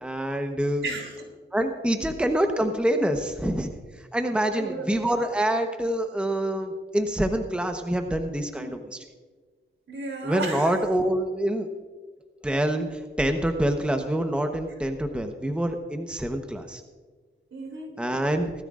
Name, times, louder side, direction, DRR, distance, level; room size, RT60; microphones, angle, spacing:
voice 1, 0.0-0.8 1.5-3.7 4.1-9.0 10.2-11.7 12.4-16.8 18.0-18.5, right 1 dB, 5° right, 5 dB, 1.1 m, -26 dB
voice 2, 0.8-1.2 2.0-2.1 4.5-4.9 8.6-8.8 9.9-10.8 17.5-17.9, right 3 dB, 70° right, 1 dB, 3.4 m, -34 dB
19.5 x 13.0 x 2.5 m, 1.4 s
cardioid pair, 75°, 21 cm